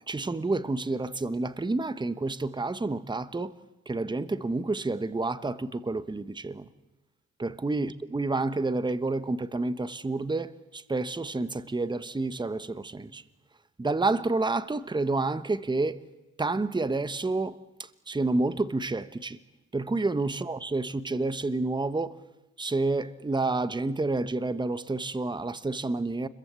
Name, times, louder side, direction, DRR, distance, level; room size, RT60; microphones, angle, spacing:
voice 1, 0.1-3.5 3.9-6.7 7.4-13.2 13.8-16.0 16.4-19.4 19.7-22.2 22.6-26.3, right 3 dB, 15° right, 1.2 m, -29 dB
29.5 x 22.0 x 8.3 m
cardioid pair, 90°, 30 cm